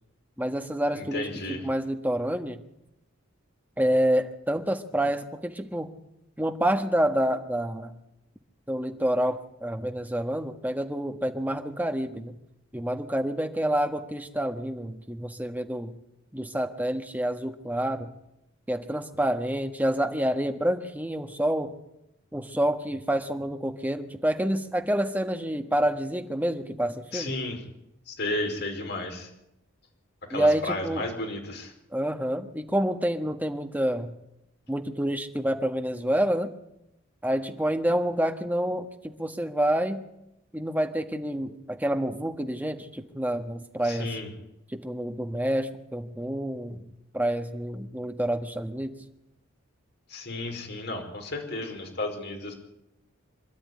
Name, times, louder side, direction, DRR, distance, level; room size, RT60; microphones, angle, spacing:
voice 1, 0.4-1.3 1.6-2.6 3.8-5.9 6.4-8.0 8.7-12.4 12.7-16.0 16.3-18.1 18.7-21.7 22.3-27.3 30.3-31.0 31.9-34.1 34.7-36.5 37.2-40.0 40.5-44.2 44.7-46.8 47.1-48.9, right 1 dB, 10° right, 6 dB, 1.5 m, -28 dB
voice 2, 0.9-1.6 27.1-27.6 28.1-29.3 30.3-31.7 43.8-44.3 50.1-52.5, left 2 dB, 50° left, 3 dB, 4.8 m, -33 dB
25.5 x 12.5 x 9.7 m, 0.86 s
head